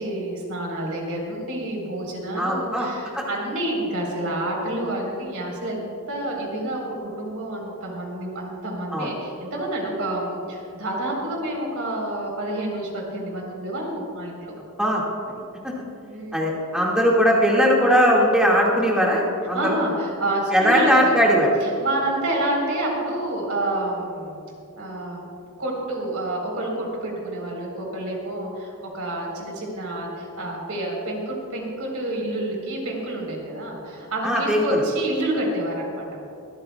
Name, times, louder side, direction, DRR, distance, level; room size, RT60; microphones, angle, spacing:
voice 1, 0.0-14.4 16.0-16.5 19.5-21.1 21.6-24.4 24.8-25.2 25.6-36.1, right 1 dB, 70° right, -1 dB, 3.9 m, -28 dB
voice 2, 2.4-2.9 3.1-3.2 8.9-9.1 14.8-15.0 15.6-15.7 16.3-19.8 20.5-21.5 34.2-34.8, equal, 5° right, -4 dB, 1.9 m, -19 dB
24.5 x 14.5 x 2.3 m, 2.6 s
head